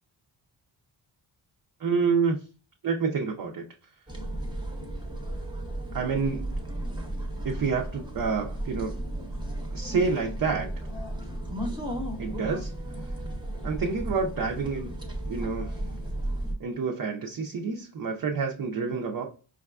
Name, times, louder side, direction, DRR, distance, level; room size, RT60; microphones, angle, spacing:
voice 1, 1.8-2.4 2.8-3.7 5.9-6.5 7.4-8.9 9.7-10.9 12.2-12.7 13.6-15.0 15.3-15.8 16.6-19.3, right 5 dB, 45° right, 1 dB, 0.5 m, -28 dB
sound 1, 4.1-16.5, right 1 dB, 10° right, 0.7 m, -34 dB
4.7 x 2.3 x 2.3 m, 0.38 s
cardioid pair, 75°, 49 cm